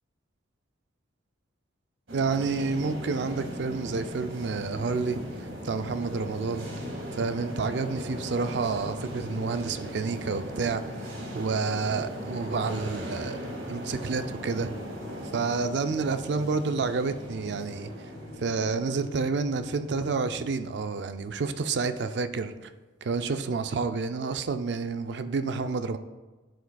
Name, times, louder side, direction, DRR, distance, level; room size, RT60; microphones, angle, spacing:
voice 1, 2.1-5.2 5.6-6.7 7.1-13.4 13.7-14.8 15.3-17.9 18.4-22.5 23.0-26.0, right 4 dB, 60° right, 10 dB, 0.4 m, -29 dB
sound 1, 2.1-20.3, equal, 80° right, 1.9 m, -39 dB
sound 2, 2.2-20.3, equal, 65° left, 2.1 m, -47 dB
11.5 x 5.0 x 2.3 m, 1.2 s
head